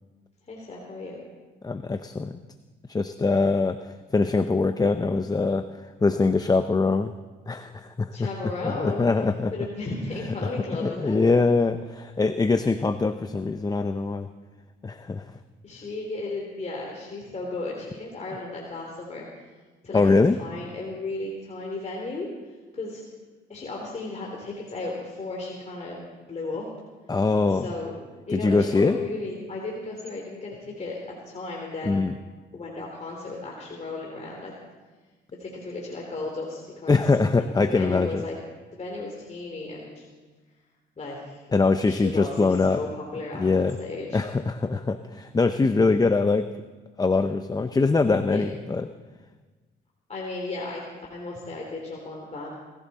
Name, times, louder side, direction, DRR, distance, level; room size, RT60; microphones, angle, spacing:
voice 1, 0.5-1.2 8.1-9.1 9.5-11.2 15.6-19.2 19.8-20.0 20.4-22.3 22.7-23.0 23.5-26.0 26.3-26.7 27.5-28.0 28.3-31.0 31.2-32.0 32.5-34.5 35.4-37.0 37.7-38.3 38.7-40.0 41.0-41.4 41.9-44.2 48.3-48.4 50.1-50.8 51.1-52.5, left 2 dB, 35° left, -2 dB, 3.3 m, -34 dB
voice 2, 1.6-2.3 2.9-3.8 4.1-5.6 6.0-7.1 7.5-8.3 8.8-9.5 10.8-14.3 14.8-15.2 19.9-20.4 27.1-27.7 28.3-29.0 31.8-32.1 36.9-38.2 41.5-42.8 43.3-43.8 44.1-46.5 47.0-48.9, left 3 dB, 20° left, 10 dB, 0.6 m, -23 dB
20.0 x 15.5 x 4.2 m, 1.3 s
cardioid pair, 90°, 20 cm